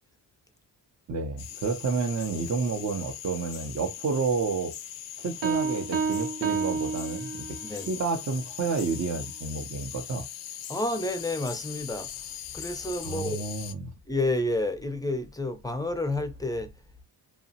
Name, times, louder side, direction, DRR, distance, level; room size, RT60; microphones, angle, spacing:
voice 1, 1.1-4.7 5.2-10.2 13.0-13.9, right 4 dB, 40° right, 0.5 m, -30 dB
sound 1, 1.4-13.7, left 10 dB, 75° left, 0.5 m, -40 dB
Piano, 5.4-7.8, right 5 dB, 90° right, 0.6 m, -29 dB
voice 2, 7.6-8.0 10.7-12.1 12.5-13.6 14.1-16.7, left 2 dB, 10° left, 0.4 m, -30 dB
2.8 x 2.1 x 2.7 m
cardioid pair, 80°, 43 cm